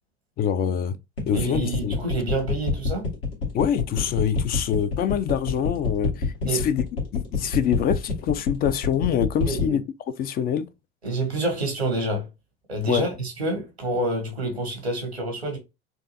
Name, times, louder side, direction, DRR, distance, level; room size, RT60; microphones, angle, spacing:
voice 1, 0.4-1.0 1.3-2.0 3.5-9.8 10.2-10.7 12.9-13.1, left 9 dB, 30° left, 0.4 m, -25 dB
sound 1, 1.2-9.7, left 4 dB, 75° left, 1.5 m, -26 dB
voice 2, 1.3-3.1 6.5-6.7 9.5-9.8 11.0-12.3 12.7-15.6, right 2 dB, 90° right, 1.2 m, -27 dB
4.5 x 2.5 x 2.6 m
figure-of-eight pair, 65°, 31 cm